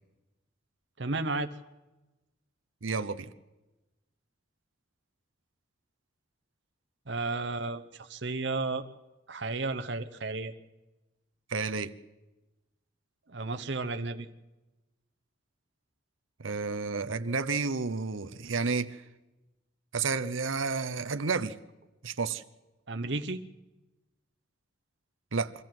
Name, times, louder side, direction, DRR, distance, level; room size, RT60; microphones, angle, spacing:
voice 1, 1.0-1.5 7.1-8.9 9.3-10.5 13.3-14.3 22.9-23.4, right 3 dB, 60° right, 1.0 m, -33 dB
voice 2, 2.8-3.3 11.5-11.9 16.4-19.0 19.9-21.6 22.0-22.4 25.3-25.5, right 4 dB, 90° right, 0.8 m, -31 dB
24.0 x 14.5 x 7.7 m
head